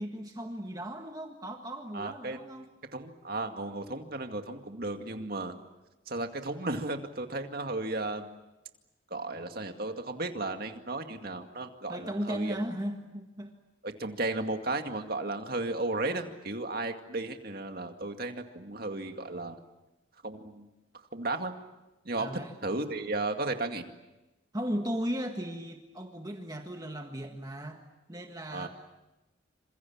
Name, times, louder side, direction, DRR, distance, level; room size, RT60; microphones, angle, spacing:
voice 1, 0.0-2.7 11.9-13.5 22.2-22.5 24.5-27.8 28.1-28.7, equal, 20° right, 4 dB, 1.6 m, -36 dB
voice 2, 1.9-2.4 2.9-5.6 6.1-8.3 9.1-12.6 13.8-19.6 20.2-20.7 21.1-21.6 22.1-22.3 22.6-23.9 28.5-28.7, right 2 dB, 50° right, 5 dB, 2.2 m, -34 dB
28.0 x 26.5 x 7.3 m, 1.0 s
head